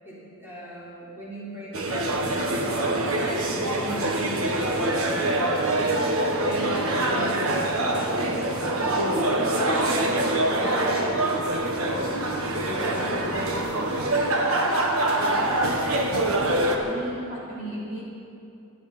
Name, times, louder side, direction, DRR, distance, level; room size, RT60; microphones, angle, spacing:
voice 1, 0.0-5.9 6.4-11.2 11.7-14.6 15.2-16.0, equal, 10° right, -9 dB, 4.3 m, -38 dB
sound 1, 1.7-16.8, right 1 dB, 75° right, 1.5 m, -24 dB
voice 2, 11.6-12.2 12.4-13.9 16.2-18.0, equal, 45° right, -7 dB, 4.1 m, -38 dB
26.0 x 12.0 x 4.4 m, 2.7 s
head